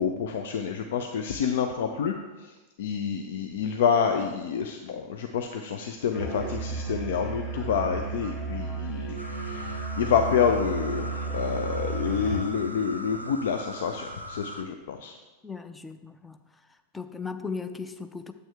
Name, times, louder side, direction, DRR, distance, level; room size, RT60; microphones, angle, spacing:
voice 1, 0.0-15.2, left 7 dB, 55° left, 5 dB, 0.5 m, -28 dB
Musical instrument, 6.1-12.5, right 4 dB, 35° left, 2.0 m, -33 dB
sound 1, 9.2-14.6, equal, 85° right, 0.5 m, -40 dB
voice 2, 15.4-16.4 16.9-18.3, left 5 dB, 10° left, 9 dB, 0.5 m, -37 dB
8.9 x 8.0 x 3.4 m, 1.2 s
figure-of-eight pair, 90°, 0 cm